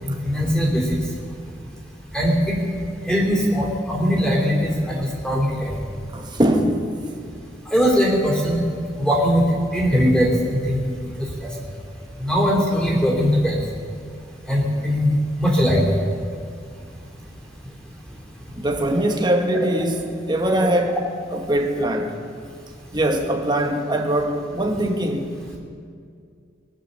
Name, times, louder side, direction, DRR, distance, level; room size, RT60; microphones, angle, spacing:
voice 1, 0.0-0.8 2.1-2.6 3.1-5.8 7.7-8.6 9.0-9.4 9.7-10.9 12.2-13.6 14.5-15.1 15.4-15.9 19.6-19.7, equal, 5° left, 3.3 m, -20 dB
voice 2, 6.1-6.9 18.6-21.0 21.3-22.2 22.9-25.4, right 1 dB, 25° right, 1.4 m, -22 dB
20.5 x 9.0 x 6.9 m
head